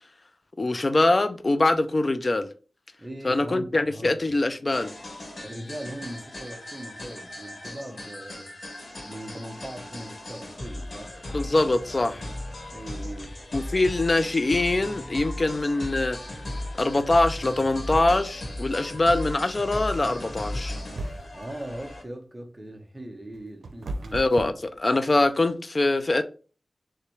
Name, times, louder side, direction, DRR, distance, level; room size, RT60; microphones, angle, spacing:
voice 1, 0.6-2.5 3.2-4.9 11.3-12.3 13.5-16.2 16.8-20.8 24.1-26.2, left 2 dB, 40° left, 0.4 m, -23 dB
voice 2, 3.0-4.3 5.4-8.5 9.0-11.2 12.7-13.4 21.3-24.2, right 1 dB, 15° right, 0.9 m, -40 dB
sound 1, 4.7-22.0, left 1 dB, 60° left, 1.2 m, -37 dB
sound 2, 20.8-21.5 23.0-25.3, right 2 dB, 85° right, 0.5 m, -36 dB
6.5 x 2.2 x 3.1 m
wide cardioid pair, 100°, 0 cm